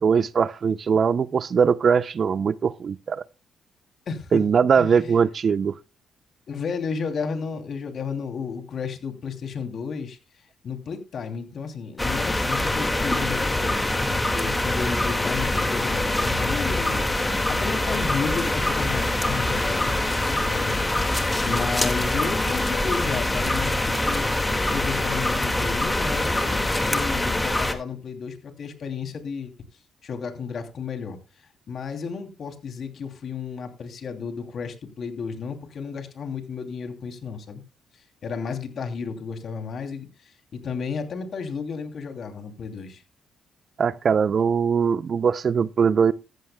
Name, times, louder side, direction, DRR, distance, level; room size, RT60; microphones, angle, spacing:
voice 1, 0.0-3.2 4.3-5.8 43.8-46.1, right 6 dB, 45° right, 0.5 m, -21 dB
voice 2, 4.1-4.4 4.7-5.1 6.5-10.2 10.6-20.1 20.5-24.3 24.7-29.5 30.0-31.2 31.7-37.6 37.9-43.0, left 5 dB, 55° left, 2.8 m, -33 dB
sound 1, 12.0-27.7, left 1 dB, 15° left, 1.9 m, -24 dB
14.5 x 14.5 x 2.2 m
cardioid pair, 90°, 0 cm